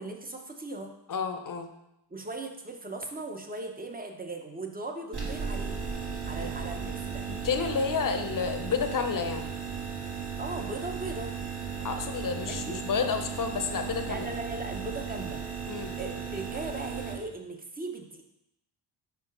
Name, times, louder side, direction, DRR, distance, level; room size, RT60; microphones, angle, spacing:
voice 1, 0.0-0.9 2.1-6.0 6.3-7.2 10.4-11.3 12.5-12.8 14.1-15.4 16.0-18.2, right 2 dB, 20° right, 3 dB, 0.8 m, -38 dB
voice 2, 1.1-1.7 6.4-6.5 7.4-9.5 11.8-14.3 15.7-15.9, left 6 dB, 45° left, 7 dB, 0.8 m, -30 dB
sound 1, 5.1-17.1, right 6 dB, 60° right, 1.9 m, -36 dB
5.1 x 4.4 x 5.3 m, 0.85 s
cardioid pair, 105°, 45 cm